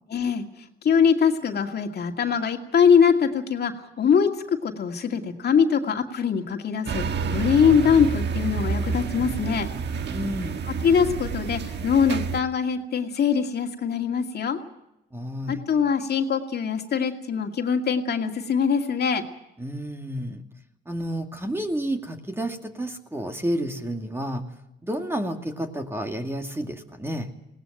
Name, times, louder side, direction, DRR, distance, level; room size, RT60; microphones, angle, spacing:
voice 1, 0.1-0.4 0.8-3.7 4.0-4.3 4.6-9.7 10.8-14.6 15.5-19.2, left 6 dB, 55° left, 4 dB, 2.3 m, -22 dB
sound 1, 6.9-12.4, right 5 dB, 60° right, 1.4 m, -29 dB
voice 2, 10.1-10.7 15.1-15.6 19.6-20.4 20.9-24.4 24.8-27.3, equal, 10° right, 4 dB, 2.3 m, -30 dB
20.0 x 18.0 x 9.0 m, 0.87 s
cardioid pair, 90°, 20 cm